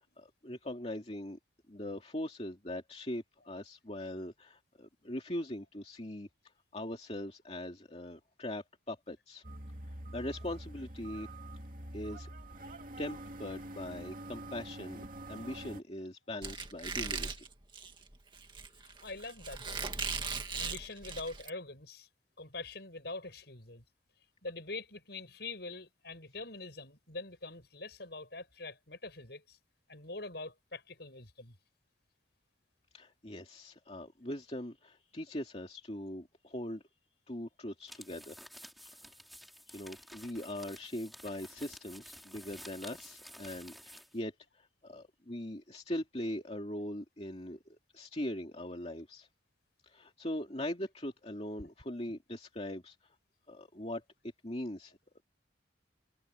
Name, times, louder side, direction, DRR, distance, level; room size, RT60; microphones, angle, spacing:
voice 1, 0.2-1.4 1.7-6.3 6.7-9.4 9.8-11.3 11.9-12.3 13.0-17.5 32.9-36.8 37.3-38.4 39.0-39.1 39.7-49.3 49.8-53.0 53.5-54.0 54.4-55.2, left 1 dB, 35° left, 2.5 m, -41 dB
sound 1, 9.4-15.8, right 1 dB, 45° right, 2.5 m, -46 dB
Squeak, 16.4-21.5, right 4 dB, 25° right, 2.2 m, -38 dB
voice 2, 18.8-20.1 20.6-22.1 22.4-23.8 24.4-29.6 29.9-31.6, left 3 dB, 60° left, 7.2 m, -44 dB
sound 2, 37.8-44.2, equal, ahead, 4.7 m, -52 dB
head